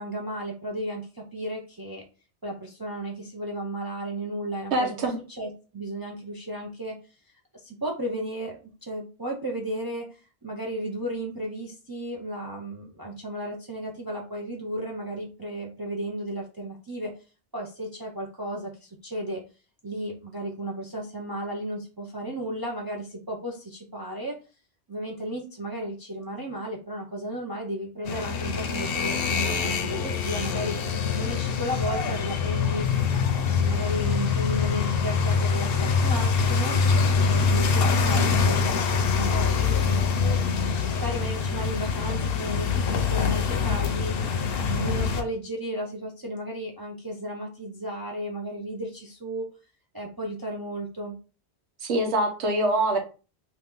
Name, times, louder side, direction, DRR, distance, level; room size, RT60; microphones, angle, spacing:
voice 1, 0.0-2.0 2.4-5.0 5.4-7.0 7.5-17.1 17.5-19.4 19.8-24.3 24.9-30.8 31.1-36.8 37.3-39.8 40.2-44.1 44.5-49.5 49.9-51.2, right 1 dB, 30° right, -1 dB, 0.5 m, -34 dB
voice 2, 4.7-5.2 51.8-53.0, right 1 dB, 80° right, 3 dB, 1.2 m, -24 dB
sound 1, 28.0-45.2, left 5 dB, 65° left, 0.8 m, -24 dB
2.9 x 2.9 x 3.6 m, 0.34 s
omnidirectional pair, 1.1 m